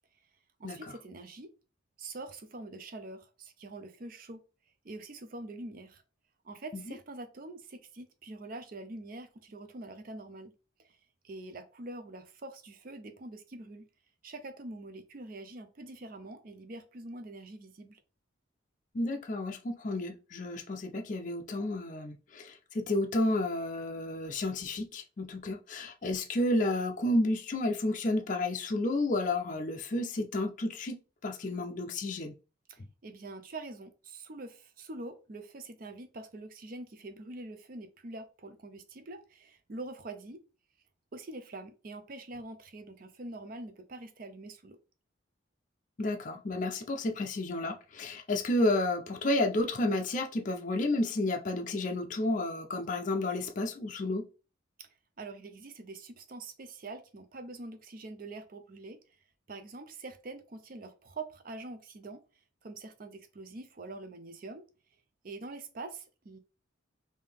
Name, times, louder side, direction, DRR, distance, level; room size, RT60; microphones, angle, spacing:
voice 1, 0.6-1.5 2.0-4.4 4.8-6.0 6.4-10.5 10.8-11.0 11.2-13.9 14.2-18.0 32.7-40.4 41.1-44.8 54.8-54.9 55.2-59.0 59.5-62.2 62.6-64.6 65.2-66.4, right 2 dB, 45° right, 0.5 m, -45 dB
voice 2, 18.9-32.3 46.0-54.2, left 1 dB, 40° left, 0.4 m, -31 dB
3.7 x 2.7 x 3.4 m
head